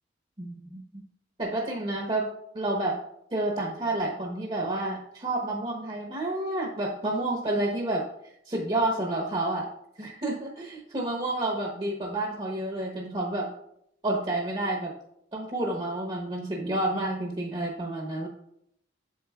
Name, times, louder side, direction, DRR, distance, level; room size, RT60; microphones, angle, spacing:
voice 1, 0.4-1.0 1.4-2.3 2.5-3.0 3.3-8.1 8.5-9.7 10.0-13.5 14.0-14.9 15.3-18.3, right 2 dB, 30° right, 0 dB, 0.9 m, -29 dB
7.9 x 7.5 x 2.3 m, 0.73 s
head